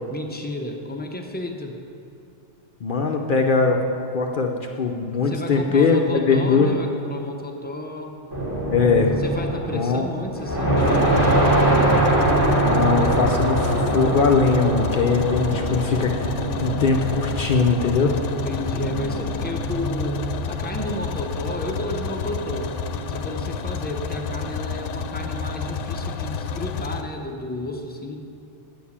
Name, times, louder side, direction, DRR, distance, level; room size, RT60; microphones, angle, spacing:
voice 1, 0.1-1.8 5.3-8.1 9.2-11.9 18.4-22.7 23.1-28.3, left 1 dB, 10° left, 2 dB, 0.5 m, -32 dB
voice 2, 2.8-3.8 4.1-6.7 8.7-9.1 9.7-10.0 12.6-16.1 16.6-18.1, left 4 dB, 55° left, 2 dB, 0.7 m, -20 dB
sound 1, 8.3-9.9 10.3-26.7, right 2 dB, 20° right, 1.6 m, -24 dB
sound 2, 10.8-27.0, left 6 dB, 80° left, 0.9 m, -30 dB
7.8 x 6.8 x 7.1 m, 2.6 s
omnidirectional pair, 1.2 m